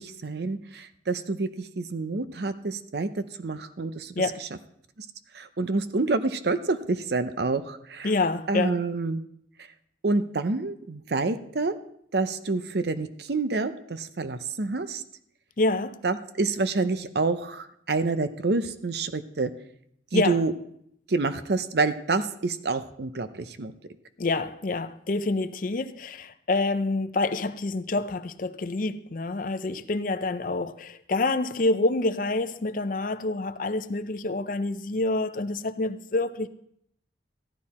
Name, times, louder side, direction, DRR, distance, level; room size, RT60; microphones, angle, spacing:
voice 1, 0.0-4.5 5.0-5.1 5.3-8.1 8.5-9.2 10.0-11.7 12.1-15.0 16.0-19.5 20.1-20.5 21.1-23.7, right 3 dB, 60° right, 0.6 m, -28 dB
voice 2, 4.2-4.5 8.0-8.8 15.6-16.0 20.1-20.4 24.2-36.5, left 2 dB, 45° left, 0.5 m, -27 dB
14.5 x 11.5 x 4.3 m
head